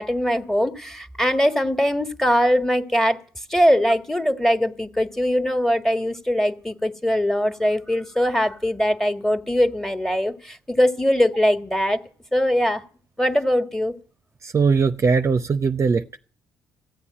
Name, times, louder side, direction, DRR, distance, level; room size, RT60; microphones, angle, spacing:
voice 1, 0.0-3.2 3.5-12.0 12.3-12.8 13.2-13.9, equal, 5° left, 1.6 m, -21 dB
voice 2, 14.4-16.2, right 5 dB, 40° right, 0.6 m, -20 dB
14.5 x 8.5 x 8.9 m
hypercardioid pair, 50°, 8 cm